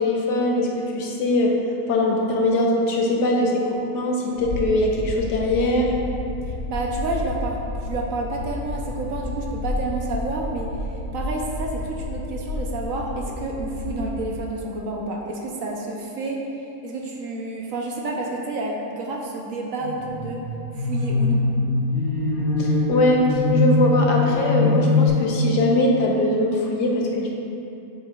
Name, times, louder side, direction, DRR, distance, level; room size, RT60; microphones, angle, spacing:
voice 1, 0.0-1.6 1.9-5.9 22.6-27.3, left 1 dB, 85° left, -1 dB, 1.4 m, -21 dB
sound 1, 4.4-14.4, left 2 dB, 70° left, 1.0 m, -31 dB
voice 2, 6.5-10.7 11.1-16.4 16.8-20.4 20.8-21.5, right 2 dB, 65° right, -1 dB, 1.0 m, -29 dB
sound 2, 19.8-25.1, left 2 dB, 55° left, 1.9 m, -22 dB
7.9 x 6.5 x 2.4 m, 2.8 s
omnidirectional pair, 1.7 m